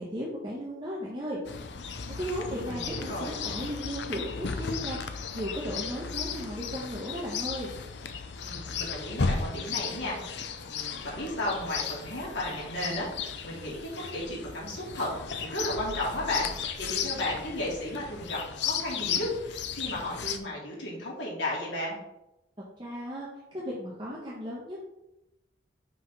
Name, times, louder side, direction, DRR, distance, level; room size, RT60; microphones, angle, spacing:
voice 1, 0.0-1.4 2.1-7.7 22.8-24.8, equal, 25° right, -6 dB, 1.4 m, -36 dB
Chirp tweet, 1.4-20.4, left 6 dB, 70° left, 0.7 m, -35 dB
voice 2, 2.5-3.3 8.4-22.0, left 1 dB, 90° left, -5 dB, 3.0 m, -34 dB
6.0 x 4.8 x 5.5 m, 0.89 s
head